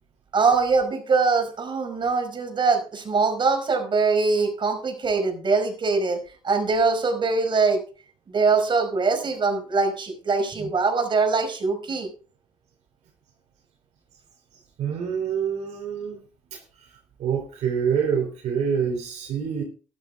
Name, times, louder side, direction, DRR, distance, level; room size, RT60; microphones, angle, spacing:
voice 1, 0.3-7.8 8.3-12.1, right 4 dB, 40° right, 6 dB, 5.0 m, -23 dB
voice 2, 14.8-16.2 16.5-16.6 17.2-19.6, right 7 dB, 70° right, 2 dB, 3.4 m, -26 dB
13.0 x 11.5 x 3.6 m, 0.37 s
supercardioid pair, 75°, 12 cm